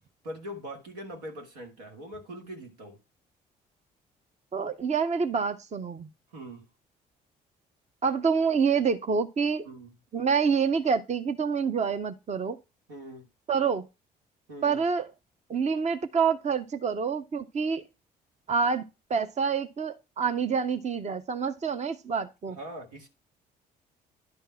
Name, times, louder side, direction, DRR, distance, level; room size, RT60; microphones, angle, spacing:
voice 1, 0.2-3.0 6.3-6.6 9.7-9.9 12.9-13.3 14.5-14.8 22.6-23.1, equal, 85° right, 2.1 m, -42 dB
voice 2, 4.5-6.1 8.0-9.7 10.1-12.6 13.5-13.9 14.6-15.1 15.5-17.8 18.5-22.6, right 6 dB, 35° right, 0.9 m, -27 dB
10.5 x 3.6 x 5.7 m
hypercardioid pair, 50°, 20 cm